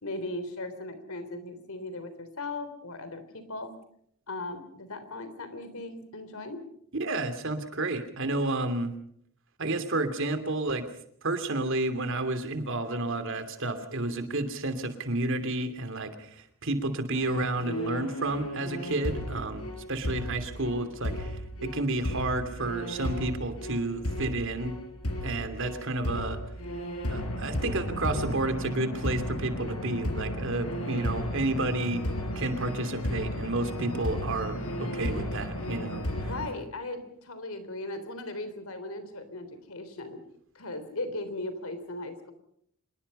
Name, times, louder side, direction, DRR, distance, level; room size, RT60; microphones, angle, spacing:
voice 1, 0.0-3.8 4.3-6.6 36.2-40.2 40.6-42.3, left 2 dB, 70° left, 11 dB, 3.6 m, -38 dB
voice 2, 7.0-8.9 9.6-10.8 11.2-24.7 25.2-26.4 27.1-32.0 32.3-36.3, right 2 dB, 60° right, 9 dB, 2.9 m, -31 dB
sound 1, 17.1-36.5, equal, 90° left, 5.2 m, -34 dB
26.0 x 21.5 x 5.5 m, 0.68 s
head